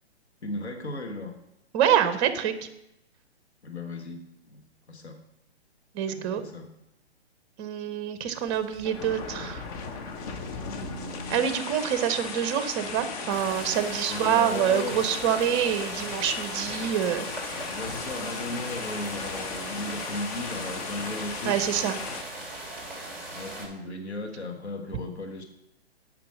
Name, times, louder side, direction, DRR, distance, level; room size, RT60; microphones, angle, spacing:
voice 1, 0.4-1.3 3.6-4.6 4.9-5.2 6.1-6.7 10.7-11.4 14.1-15.0 17.6-21.6 23.3-25.4, left 2 dB, 80° left, 4 dB, 1.5 m, -36 dB
voice 2, 1.7-2.5 5.9-6.4 7.6-9.6 11.3-17.3 21.4-22.0, right 9 dB, 25° right, 11 dB, 0.8 m, -26 dB
sound 1, 8.3-22.2, left 5 dB, 35° left, 1.0 m, -37 dB
sound 2, 13.3-23.7, right 1 dB, 5° left, 3.0 m, -39 dB
8.6 x 5.7 x 6.4 m, 0.85 s
figure-of-eight pair, 125°, 33 cm